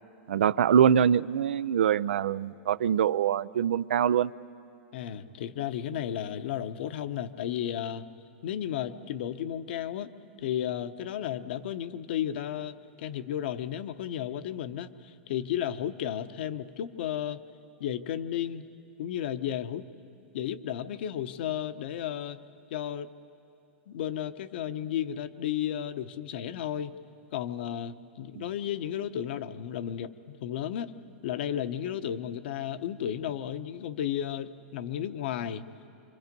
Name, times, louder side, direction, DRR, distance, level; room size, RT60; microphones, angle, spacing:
voice 1, 0.3-4.3 28.4-28.5, right 8 dB, 85° right, 18 dB, 0.4 m, -24 dB
voice 2, 4.9-8.0 8.4-10.1 10.4-17.4 17.8-18.6 19.0-19.8 20.3-22.4 22.7-23.1 23.9-27.0 27.3-30.9 31.2-35.6, left 10 dB, 65° left, 10 dB, 0.9 m, -33 dB
26.5 x 24.0 x 5.3 m, 2.5 s
hypercardioid pair, 135°, 6 cm